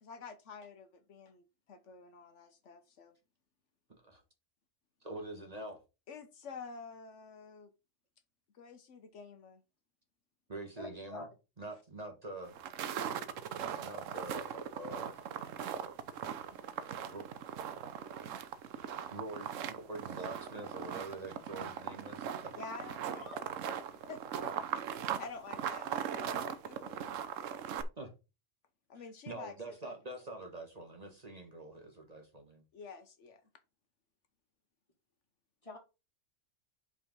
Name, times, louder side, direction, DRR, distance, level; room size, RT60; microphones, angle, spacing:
voice 1, 0.0-3.1 6.1-7.7 8.5-9.6 22.5-23.5 23.8-24.6 24.9-27.0 28.9-29.9 32.7-33.4, left 5 dB, 70° left, 1.1 m, -49 dB
voice 2, 5.0-5.8 10.5-11.3 11.6-12.6 13.7-15.2 17.0-17.3 19.1-22.5 26.8-26.9 28.0-28.1 29.3-32.6, right 2 dB, 35° right, 1.3 m, -45 dB
voice 3, 10.8-11.3 21.6-21.7 23.1-23.4 35.6-35.8, left 1 dB, 25° left, 2.0 m, -46 dB
sound 1, 12.4-27.8, right 8 dB, 85° right, 1.1 m, -39 dB
5.6 x 4.0 x 5.2 m
omnidirectional pair, 1.3 m